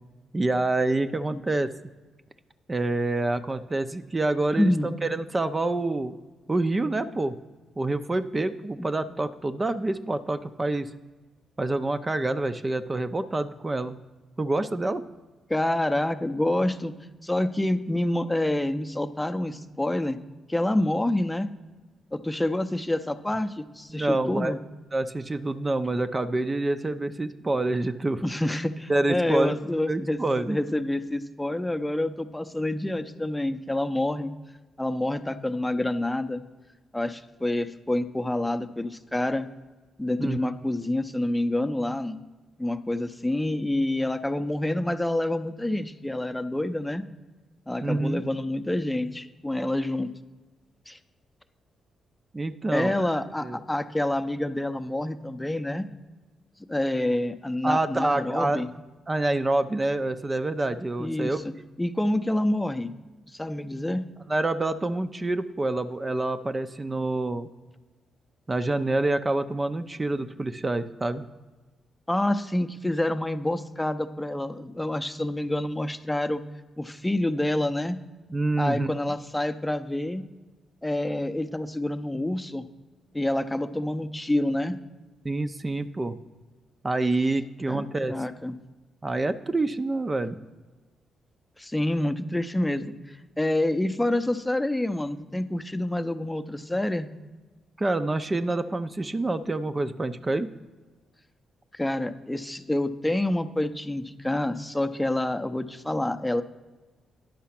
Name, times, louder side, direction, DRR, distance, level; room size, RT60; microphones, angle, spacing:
voice 1, 0.3-1.7 2.7-4.7 5.0-6.1 6.5-7.4 7.8-10.9 11.6-14.0 14.4-15.0 23.9-24.5 24.9-28.2 28.9-29.6 29.9-30.6 40.2-40.5 47.8-48.2 52.3-53.0 53.4-53.6 57.6-58.7 59.1-61.4 64.3-67.5 68.5-71.3 78.3-78.9 85.2-86.2 86.8-88.1 89.0-90.4 97.8-100.5, right 2 dB, 30° right, 10 dB, 0.6 m, -27 dB
voice 2, 4.6-4.9 15.5-16.9 17.2-20.2 20.5-21.5 22.1-24.6 28.2-30.2 30.5-34.3 34.8-36.4 36.9-39.5 40.0-42.2 42.6-47.1 47.7-50.1 50.9-51.0 52.7-55.9 56.7-58.7 61.0-61.5 61.8-62.9 63.3-64.1 72.1-76.4 76.8-78.0 78.6-80.3 80.8-82.6 83.1-84.8 87.7-88.6 91.6-97.1 101.7-106.4, left 1 dB, 10° left, 9 dB, 0.7 m, -27 dB
10.5 x 5.6 x 5.9 m, 1.2 s
hypercardioid pair, 40°, 0 cm